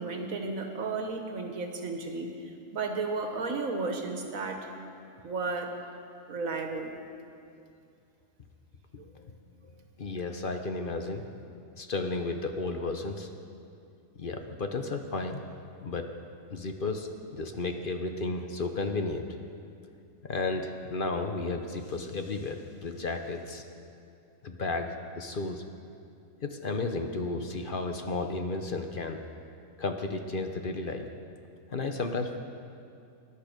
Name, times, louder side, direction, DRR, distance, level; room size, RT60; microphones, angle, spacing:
voice 1, 0.0-2.3 2.7-4.7 5.2-5.7 6.3-7.0, right 3 dB, 85° right, 4 dB, 1.8 m, -33 dB
voice 2, 9.6-11.2 11.8-13.3 14.2-15.4 15.8-16.1 16.5-19.2 20.3-23.6 24.4-25.6 26.4-29.2 29.8-31.1 31.7-32.4, left 3 dB, 45° left, 5 dB, 0.9 m, -33 dB
20.0 x 11.0 x 5.1 m, 2.5 s
omnidirectional pair, 1.4 m